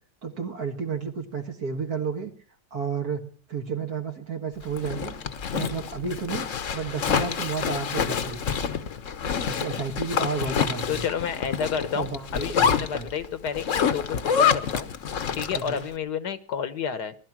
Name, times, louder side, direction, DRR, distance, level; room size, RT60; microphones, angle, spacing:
voice 1, 0.2-2.3 2.7-5.1 5.5-6.5 6.7-8.7 9.5-11.0 11.8-13.1 15.5-15.8, right 5 dB, 65° right, 3 dB, 2.1 m, -32 dB
Zipper (clothing), 4.6-15.8, left 7 dB, 55° left, 1.2 m, -27 dB
voice 2, 10.9-14.9 15.3-17.2, left 7 dB, 75° left, 13 dB, 1.7 m, -30 dB
19.0 x 12.0 x 6.0 m, 0.43 s
omnidirectional pair, 1.8 m